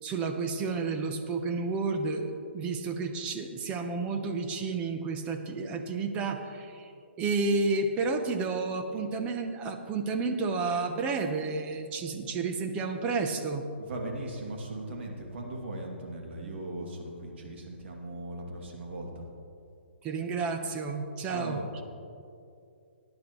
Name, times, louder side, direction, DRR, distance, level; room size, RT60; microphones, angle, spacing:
voice 1, 0.0-6.9 7.2-13.7 20.0-21.6, right 4 dB, 20° right, 6 dB, 0.8 m, -31 dB
voice 2, 13.8-19.2 21.3-21.6, right 1 dB, 65° right, 0 dB, 2.5 m, -38 dB
18.0 x 10.5 x 3.1 m, 2.5 s
hypercardioid pair, 160°, 7 cm